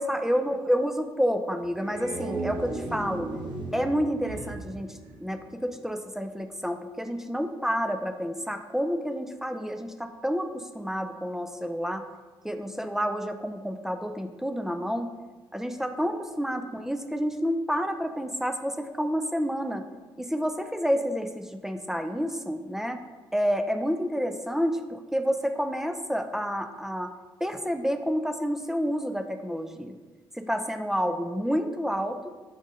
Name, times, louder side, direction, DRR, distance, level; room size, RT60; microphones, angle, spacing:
voice 1, 0.0-3.3 3.7-12.0 12.4-15.1 15.5-19.8 20.2-23.0 23.3-27.1 27.4-30.0 30.3-32.3, equal, 5° right, 7 dB, 0.3 m, -29 dB
sound 1, 1.6-5.8, right 2 dB, 50° right, 0.9 m, -36 dB
7.3 x 2.5 x 2.7 m, 1.3 s
cardioid pair, 110°, 10 cm